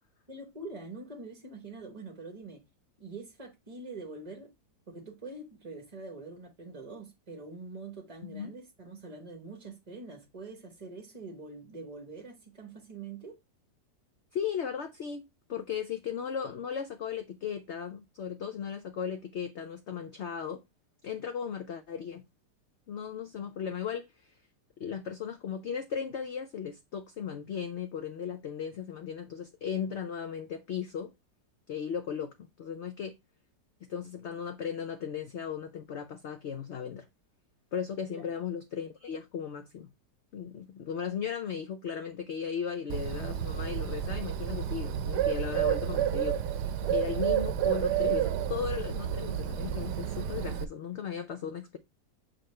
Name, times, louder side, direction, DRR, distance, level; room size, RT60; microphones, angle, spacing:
voice 1, 0.3-2.6 3.0-4.5 4.9-13.4 38.1-38.3, right 3 dB, 30° right, 0.8 m, -44 dB
voice 2, 8.2-8.5 14.3-15.2 15.5-20.6 21.0-22.2 22.9-24.1 24.8-31.1 31.7-33.2 33.9-37.0 37.7-39.9 40.3-46.4 46.9-51.8, left 7 dB, 75° left, 0.6 m, -36 dB
Bird, 42.9-50.6, right 11 dB, 75° right, 1.2 m, -30 dB
7.6 x 4.1 x 3.2 m
omnidirectional pair, 1.9 m